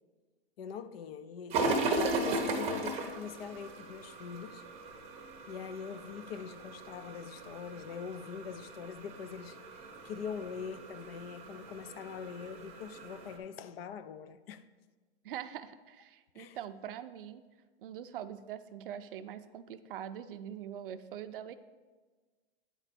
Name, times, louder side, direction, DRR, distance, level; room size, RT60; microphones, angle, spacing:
voice 1, 0.6-4.6 5.5-14.6 16.3-16.6, left 7 dB, 60° left, 0.5 m, -43 dB
sound 1, 1.5-13.4, right 2 dB, 20° right, 0.7 m, -37 dB
voice 2, 15.2-17.4 17.8-21.5, right 10 dB, 55° right, 0.5 m, -43 dB
9.2 x 4.4 x 4.1 m
hypercardioid pair, 145°, 33 cm